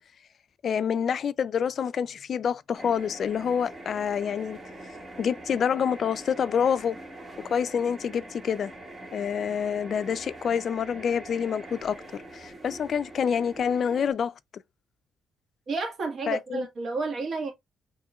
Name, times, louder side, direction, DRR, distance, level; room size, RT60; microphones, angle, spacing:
voice 1, 0.6-4.6 5.2-7.0 7.5-8.7 9.1-12.0 12.3-14.3 16.3-16.7, left 7 dB, 60° left, 0.3 m, -27 dB
sound 1, 2.8-14.1, right 1 dB, 35° right, 1.7 m, -44 dB
voice 2, 15.7-17.5, right 3 dB, 55° right, 1.8 m, -31 dB
5.5 x 3.0 x 2.3 m
supercardioid pair, 60°, 0 cm